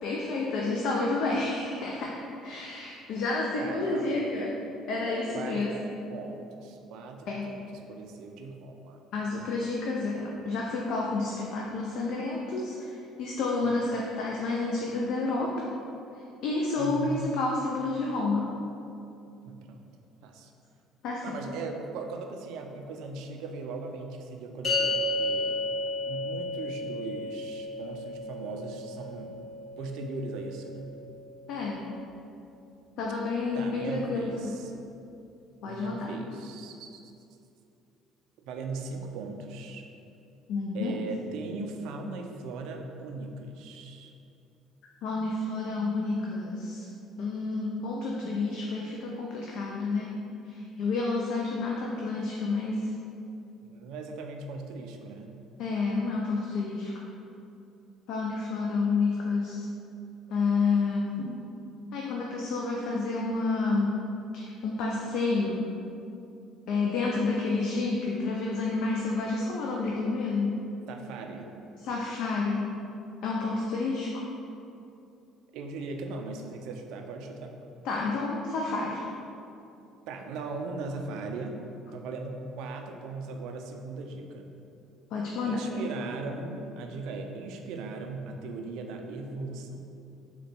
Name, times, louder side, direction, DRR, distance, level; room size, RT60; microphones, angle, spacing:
voice 1, 0.0-4.5 4.9-5.8 7.3-7.5 9.1-15.7 16.4-18.5 21.0-21.4 31.5-31.8 33.0-34.6 35.6-36.1 40.5-41.0 45.0-46.8 47.2-50.1 50.4-52.9 55.6-57.0 58.1-59.7 60.3-61.4 61.9-63.9 64.3-65.6 66.7-70.5 71.8-72.7 73.2-74.3 77.8-79.0 85.1-85.8, left 3 dB, 65° left, -2 dB, 0.4 m, -30 dB
voice 2, 3.6-4.2 5.3-5.8 6.1-9.0 13.6-13.8 16.8-17.2 19.4-19.9 20.2-20.5 21.2-25.7 26.1-29.5 29.8-30.9 33.5-34.7 35.6-37.0 38.4-39.8 40.7-44.1 53.6-55.4 70.9-71.5 75.5-77.6 80.1-81.6 81.9-84.5 85.5-89.8, right 3 dB, 70° right, 3 dB, 0.3 m, -38 dB
sound 1, 24.6-31.2, left 2 dB, 45° left, 1.1 m, -33 dB
3.7 x 2.2 x 4.4 m, 2.7 s
hypercardioid pair, 60°, 0 cm